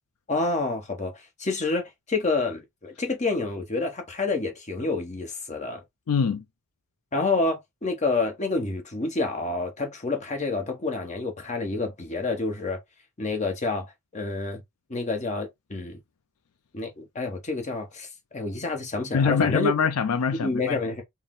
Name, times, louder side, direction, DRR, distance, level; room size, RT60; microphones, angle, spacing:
voice 1, 0.3-5.8 7.1-12.8 13.2-13.9 14.1-14.6 14.9-16.0 16.7-19.7 20.4-21.0, left 3 dB, 30° left, 1.0 m, -28 dB
voice 2, 6.1-6.4 19.1-20.8, left 6 dB, 75° left, 0.4 m, -24 dB
4.1 x 2.2 x 3.6 m
head